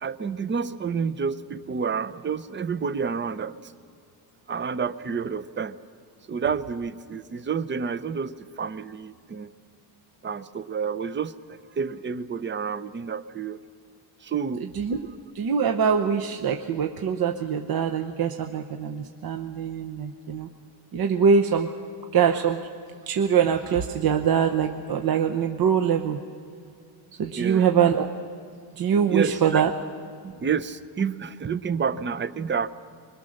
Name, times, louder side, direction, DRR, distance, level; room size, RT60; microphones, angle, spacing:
voice 1, 0.0-3.7 4.5-5.8 6.3-9.5 10.2-13.6 14.2-14.7 27.3-27.7 29.1-29.6 30.2-32.7, right 6 dB, 25° right, 14 dB, 0.7 m, -29 dB
voice 2, 15.3-20.5 20.9-21.7 22.1-22.6 23.1-26.2 27.2-28.1 28.8-29.7, right 7 dB, 50° right, 4 dB, 1.0 m, -23 dB
22.0 x 21.5 x 6.5 m, 2.2 s
cardioid pair, 100°, 48 cm